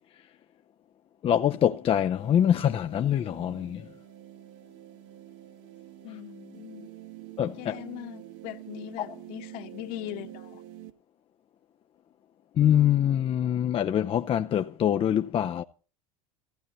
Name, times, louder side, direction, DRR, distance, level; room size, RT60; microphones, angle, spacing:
voice 1, 1.2-3.9 7.4-7.8 9.0-9.1 12.6-15.6, left 10 dB, 30° left, 0.7 m, -24 dB
sound 1, 2.2-10.9, right 14 dB, 70° right, 1.9 m, -47 dB
voice 2, 6.0-6.9 7.6-10.6, left 18 dB, 60° left, 1.7 m, -40 dB
17.0 x 15.5 x 4.1 m
hypercardioid pair, 100°, 18 cm